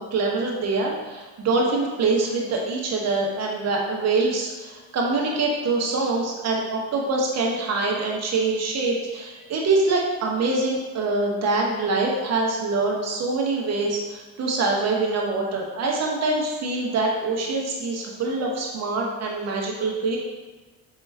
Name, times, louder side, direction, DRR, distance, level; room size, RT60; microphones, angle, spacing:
voice 1, 0.1-20.2, right 3 dB, 50° right, -1 dB, 1.1 m, -24 dB
4.6 x 2.9 x 3.4 m, 1.2 s
supercardioid pair, 90°, 33 cm